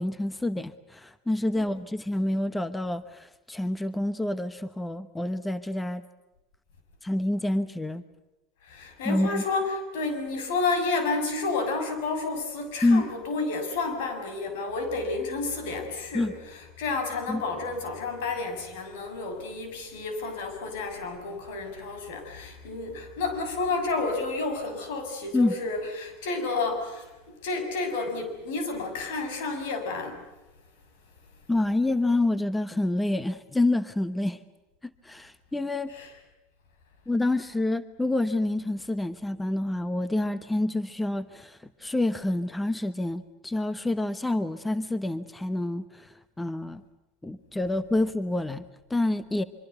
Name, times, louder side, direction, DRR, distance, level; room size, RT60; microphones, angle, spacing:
voice 1, 0.0-6.0 7.0-8.0 9.0-9.4 12.8-13.1 16.1-16.3 17.3-17.4 25.3-25.5 31.5-34.4 35.0-35.9 37.1-46.8 47.2-49.4, left 2 dB, 10° left, 14 dB, 1.0 m, -27 dB
voice 2, 8.6-27.1 27.4-30.2 35.9-36.1, left 3 dB, 75° left, 7 dB, 6.9 m, -31 dB
25.0 x 24.5 x 8.1 m, 1.0 s
supercardioid pair, 115°, 0 cm